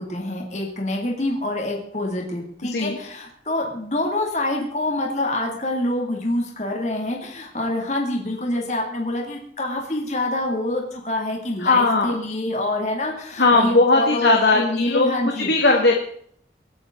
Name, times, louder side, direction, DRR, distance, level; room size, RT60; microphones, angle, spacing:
voice 1, 0.0-15.5, left 1 dB, 40° left, 0 dB, 2.5 m, -26 dB
voice 2, 11.6-12.2 13.4-15.1 15.4-15.9, left 3 dB, 75° left, 1 dB, 2.0 m, -18 dB
25.0 x 9.5 x 3.9 m, 0.62 s
head